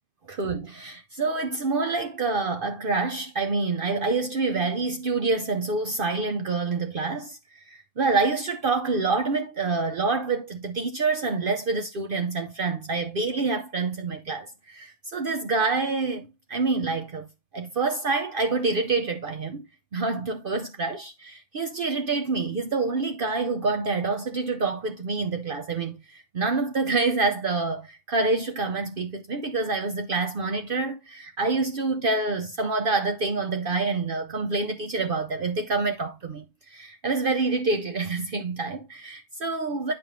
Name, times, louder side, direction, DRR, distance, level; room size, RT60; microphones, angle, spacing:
voice 1, 0.3-7.4 7.7-17.3 17.5-19.6 19.9-39.9, right 3 dB, 70° right, 0.5 m, -27 dB
8.9 x 5.2 x 3.0 m
omnidirectional pair, 1.8 m